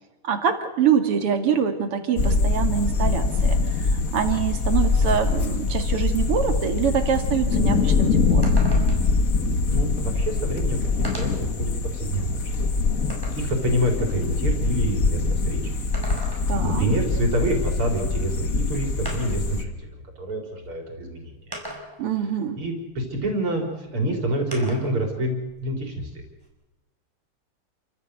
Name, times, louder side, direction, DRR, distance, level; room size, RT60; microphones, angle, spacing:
voice 1, 0.2-8.6 16.5-16.8 22.0-22.6, right 7 dB, 90° right, 7 dB, 3.0 m, -25 dB
sound 1, 2.2-19.6, left 4 dB, 40° left, 1.7 m, -23 dB
sound 2, 8.4-9.2 10.2-10.3 11.0-11.5 12.1-13.5 15.7-16.7 18.2-18.3 19.0-19.5 20.5-20.6 21.5-22.1 24.5-25.0 25.3-26.5, equal, 10° right, 4.8 m, -38 dB
voice 2, 9.7-12.5 13.4-15.7 16.3-21.3 22.6-26.1, right 1 dB, 75° right, 3 dB, 4.6 m, -27 dB
28.5 x 15.0 x 8.0 m, 1.1 s
omnidirectional pair, 2.4 m